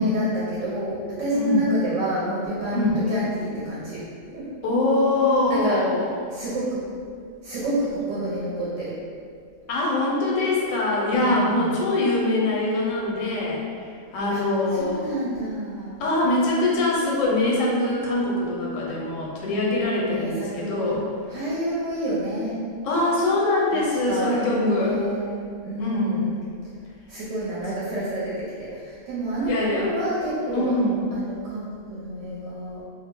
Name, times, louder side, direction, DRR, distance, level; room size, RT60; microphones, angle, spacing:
voice 1, 0.0-4.0 4.3-4.5 5.5-5.8 6.3-6.8 7.4-9.0 11.1-11.8 14.3-14.4 14.7-16.0 20.1-21.0 21.3-22.7 23.7-25.3 25.6-26.4 27.1-30.8 31.1-32.8, right 1 dB, 75° right, -7 dB, 0.9 m, -28 dB
voice 2, 2.7-3.0 4.6-6.0 9.7-13.6 14.1-15.1 16.0-21.0 22.8-24.9 25.8-26.2 29.5-29.9 30.5-30.9, left 2 dB, 80° left, -4 dB, 1.0 m, -23 dB
2.4 x 2.0 x 3.5 m, 2.2 s
omnidirectional pair, 1.3 m